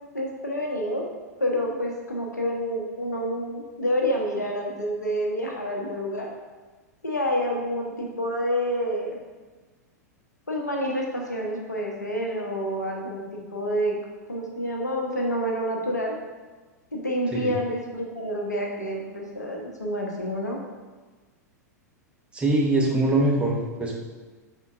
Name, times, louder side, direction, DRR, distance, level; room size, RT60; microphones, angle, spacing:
voice 1, 0.1-1.0 1.4-6.3 7.0-9.2 10.5-13.9 14.3-16.2 16.9-20.6, equal, 80° left, 0 dB, 0.8 m, -28 dB
voice 2, 22.3-23.9, right 2 dB, 10° right, -3 dB, 0.9 m, -23 dB
5.4 x 3.7 x 2.5 m, 1.3 s
figure-of-eight pair, 95°, 9 cm